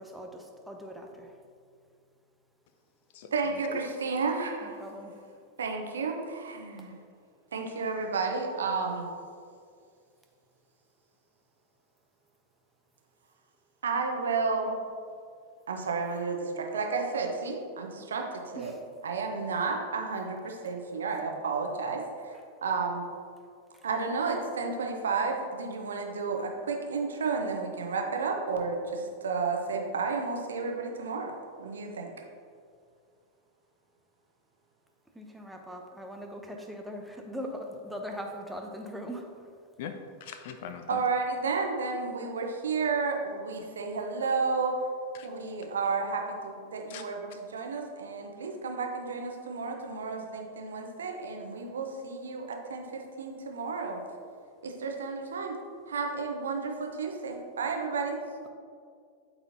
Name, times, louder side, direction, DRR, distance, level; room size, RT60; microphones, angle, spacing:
voice 1, 0.0-1.4 4.6-5.1 18.5-18.8 35.1-39.3, equal, ahead, 2 dB, 0.8 m, -40 dB
voice 2, 3.3-4.8 5.6-6.9 7.5-9.1 13.8-14.8 15.7-18.7 19.0-23.0 23.8-32.1 40.9-44.8 45.2-54.0 54.6-55.6 55.9-58.2, right 4 dB, 65° right, 2 dB, 0.9 m, -32 dB
voice 3, 39.8-41.0 45.2-45.3 46.9-47.0, left 7 dB, 50° left, 7 dB, 0.4 m, -41 dB
12.0 x 4.2 x 2.8 m, 2.2 s
figure-of-eight pair, 90°, 0 cm